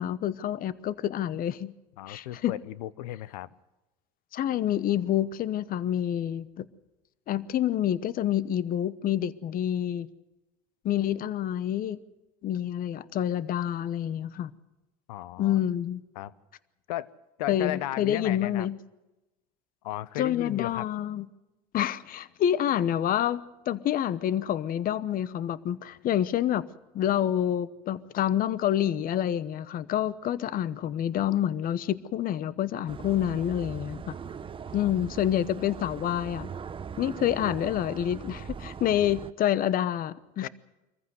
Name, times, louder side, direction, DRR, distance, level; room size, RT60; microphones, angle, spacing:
voice 1, 0.0-1.7 2.1-2.5 4.3-6.6 7.3-10.1 10.8-12.0 12.4-14.5 15.4-16.0 17.5-18.8 20.2-21.3 21.7-26.7 26.9-34.1 34.7-36.5 37.0-40.5, left 11 dB, 45° left, 17 dB, 1.0 m, -28 dB
voice 2, 2.0-3.5 15.1-15.6 16.1-16.3 16.9-17.1 17.4-18.7 19.8-20.9 34.8-34.9 40.4-40.5, left 14 dB, 80° left, 19 dB, 0.9 m, -35 dB
sound 1, 32.9-39.3, right 6 dB, 25° right, 0.9 m, -40 dB
24.5 x 15.0 x 7.9 m, 1.0 s
hypercardioid pair, 85°, 20 cm